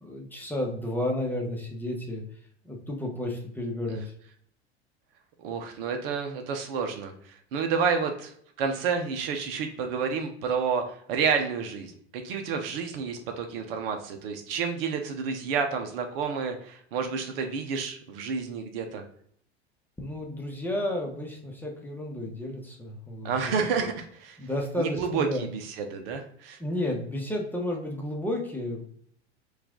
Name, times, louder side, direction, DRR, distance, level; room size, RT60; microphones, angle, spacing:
voice 1, 0.0-2.2 2.6-4.0 20.0-23.3 23.8-23.9 24.4-25.4 26.6-28.8, left 1 dB, 5° left, 0 dB, 1.0 m, -32 dB
voice 2, 5.4-7.1 7.5-8.3 8.6-19.0 23.2-24.4 24.8-26.6, right 5 dB, 60° right, 5 dB, 0.8 m, -30 dB
4.5 x 2.6 x 3.7 m, 0.64 s
hypercardioid pair, 85°, 33 cm